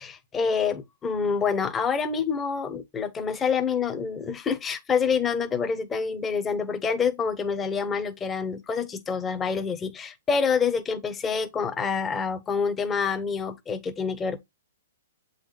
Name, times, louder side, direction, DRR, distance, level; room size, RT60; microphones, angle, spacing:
voice 1, 0.0-14.4, left 6 dB, 15° left, 0.9 m, -27 dB
7.7 x 4.0 x 3.1 m
hypercardioid pair, 145°, 0 cm